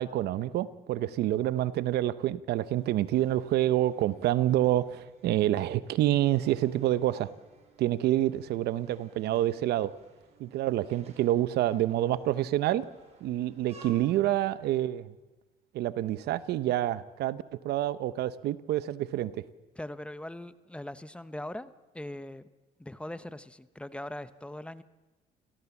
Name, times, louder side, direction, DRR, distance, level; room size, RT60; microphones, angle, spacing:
voice 1, 0.0-7.3 7.8-9.9 10.4-12.8 13.2-15.1 15.7-19.4, right 13 dB, 75° right, 15 dB, 0.9 m, -27 dB
sound 1, 2.5-13.9, right 3 dB, 40° right, 6.0 m, -60 dB
voice 2, 19.7-22.5 22.8-24.8, left 1 dB, 5° left, 13 dB, 0.9 m, -41 dB
27.5 x 18.0 x 7.2 m, 1.2 s
cardioid pair, 110°, 17 cm